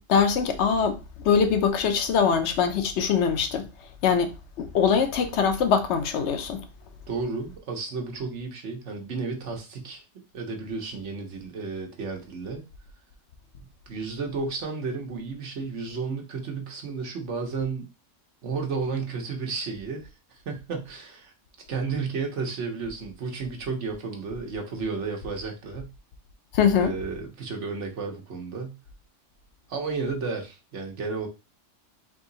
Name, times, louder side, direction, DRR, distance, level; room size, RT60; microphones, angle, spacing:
voice 1, 0.1-3.7 4.0-6.6 26.5-26.9, left 6 dB, 65° left, 1.0 m, -23 dB
voice 2, 7.1-10.0 10.3-12.6 13.9-17.9 18.4-20.1 20.5-21.3 21.7-25.9 26.8-28.8 29.7-31.3, right 4 dB, 70° right, 1.3 m, -32 dB
3.6 x 2.9 x 3.9 m
omnidirectional pair, 1.3 m